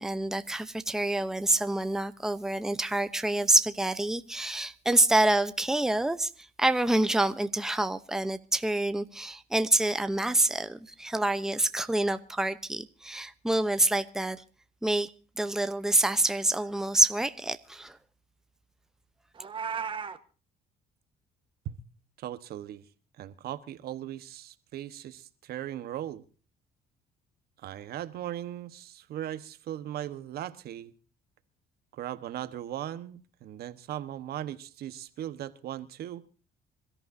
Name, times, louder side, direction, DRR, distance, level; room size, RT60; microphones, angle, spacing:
voice 1, 0.0-14.4 14.8-15.1 15.4-18.0, right 2 dB, 5° right, 0.9 m, -27 dB
Meow, 19.3-20.2, right 6 dB, 30° right, 1.5 m, -34 dB
voice 2, 22.2-22.8 23.2-26.2 27.6-30.9 31.9-36.2, right 12 dB, 70° right, 1.4 m, -38 dB
26.5 x 14.0 x 2.8 m
cardioid pair, 110°, 17 cm